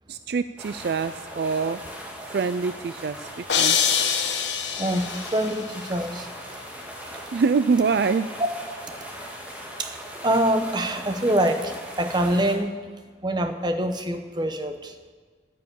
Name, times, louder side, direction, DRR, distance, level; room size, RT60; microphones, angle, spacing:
voice 1, 0.1-1.8 2.3-3.1 3.6-3.8 7.3-8.3, right 5 dB, 55° right, 12 dB, 0.3 m, -24 dB
sound 1, 0.6-12.6, equal, 10° right, 1.8 m, -39 dB
sound 2, 3.5-5.6, left 7 dB, 75° left, 1.2 m, -24 dB
voice 2, 4.8-6.4 8.4-8.5 9.8-10.0 10.2-12.7 13.2-14.9, right 1 dB, 25° right, 6 dB, 0.9 m, -25 dB
10.5 x 9.9 x 8.4 m, 1.5 s
head